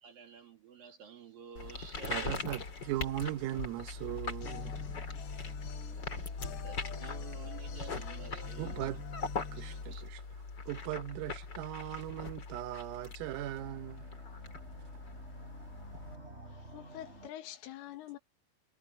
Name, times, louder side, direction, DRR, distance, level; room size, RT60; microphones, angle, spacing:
voice 1, 0.0-2.4 6.6-8.9 9.5-10.0, right 6 dB, 50° right, 3.9 m, -51 dB
sound 1, 1.5-16.2, left 4 dB, 30° left, 2.1 m, -41 dB
voice 2, 2.1-4.7 8.6-9.0 9.5-10.2 10.7-14.1, right 14 dB, 90° right, 3.9 m, -38 dB
sound 2, 4.4-9.8, left 7 dB, 60° left, 4.0 m, -49 dB
sound 3, 13.1-17.3, right 1 dB, 15° right, 6.1 m, -52 dB
voice 3, 16.5-18.2, left 13 dB, 80° left, 4.2 m, -46 dB
omnidirectional pair, 5.8 m